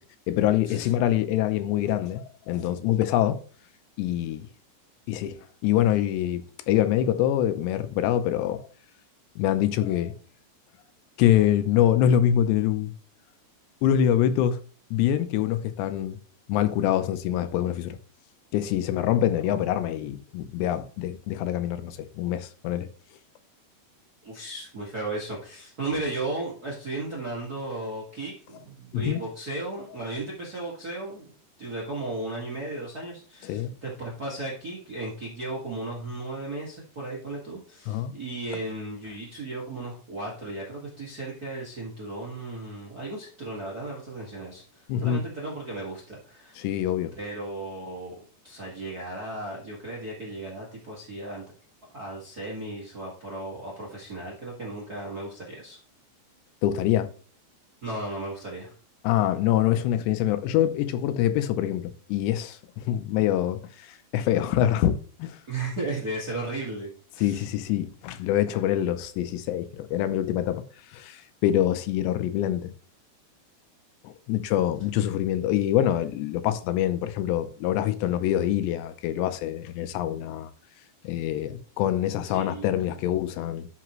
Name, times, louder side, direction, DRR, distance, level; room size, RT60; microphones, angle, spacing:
voice 1, 0.3-3.4 4.0-4.5 5.1-8.7 9.4-10.1 11.2-12.9 13.8-14.6 14.9-16.2 16.5-18.0 18.5-22.9 28.9-29.2 33.4-33.7 37.9-38.1 44.9-45.2 46.6-47.1 56.6-57.1 59.0-65.4 67.2-70.6 70.9-72.7 74.0-80.5 81.0-83.7, left 11 dB, 80° left, 2.9 m, -25 dB
voice 2, 24.2-31.3 31.6-46.6 47.1-48.1 48.4-51.4 51.9-55.8 57.8-58.7 65.5-67.4 82.2-82.9, right 2 dB, 45° right, 1.2 m, -35 dB
12.0 x 5.8 x 3.1 m
omnidirectional pair, 5.0 m